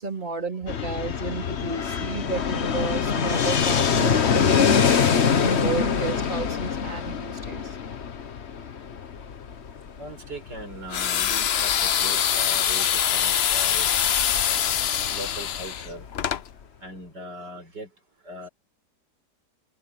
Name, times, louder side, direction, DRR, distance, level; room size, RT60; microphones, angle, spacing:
voice 1, 0.0-7.8, right 4 dB, 30° right, 3.6 m, -33 dB
Fixed-wing aircraft airplane, 0.7-16.4, left 6 dB, 45° left, 1.2 m, -25 dB
voice 2, 10.0-14.0 15.1-16.1 16.8-17.9 18.2-18.5, right 1 dB, 75° right, 6.9 m, -39 dB
sound 1, 10.9-16.4, left 9 dB, 60° left, 0.6 m, -24 dB
omnidirectional pair, 1.8 m